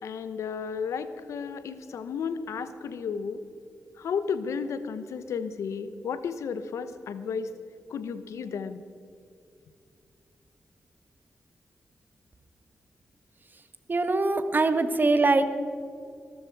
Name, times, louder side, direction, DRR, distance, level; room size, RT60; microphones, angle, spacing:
voice 1, 0.0-3.4 4.0-7.5 7.9-8.8, left 6 dB, 85° left, 12 dB, 0.9 m, -33 dB
voice 2, 13.9-15.5, right 3 dB, 40° right, 10 dB, 1.4 m, -23 dB
21.5 x 13.0 x 4.7 m, 2.4 s
cardioid pair, 55°, 5 cm